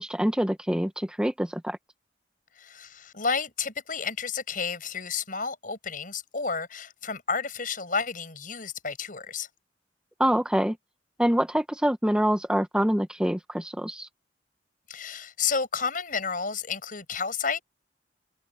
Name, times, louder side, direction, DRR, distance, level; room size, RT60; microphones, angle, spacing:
voice 1, 0.0-1.8 10.2-10.8 11.2-14.1, equal, 5° right, 0.8 m, -25 dB
voice 2, 2.6-9.5 14.9-17.6, left 5 dB, 50° left, 7.1 m, -31 dB
head